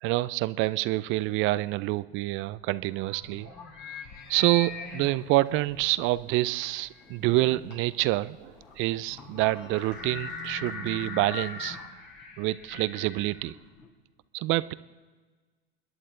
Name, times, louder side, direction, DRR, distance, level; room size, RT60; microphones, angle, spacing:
voice 1, 0.0-3.5 3.9-4.0 4.3-11.8 12.4-13.5 14.3-14.7, right 18 dB, 40° right, 17 dB, 0.5 m, -27 dB
sound 1, 2.4-13.9, left 4 dB, 40° left, 3.7 m, -41 dB
sound 2, 4.2-10.1, left 2 dB, 65° left, 5.9 m, -58 dB
29.0 x 11.0 x 3.8 m, 1.4 s
hypercardioid pair, 95°, 30 cm